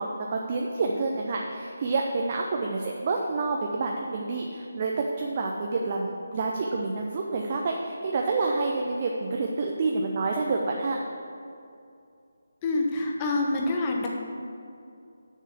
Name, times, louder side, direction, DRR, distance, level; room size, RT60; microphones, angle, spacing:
voice 1, 0.0-11.0, right 3 dB, 35° right, 0 dB, 0.7 m, -28 dB
voice 2, 12.6-14.1, left 2 dB, 20° left, 0 dB, 1.1 m, -26 dB
6.7 x 6.5 x 7.5 m, 2.5 s
figure-of-eight pair, 155°, 0 cm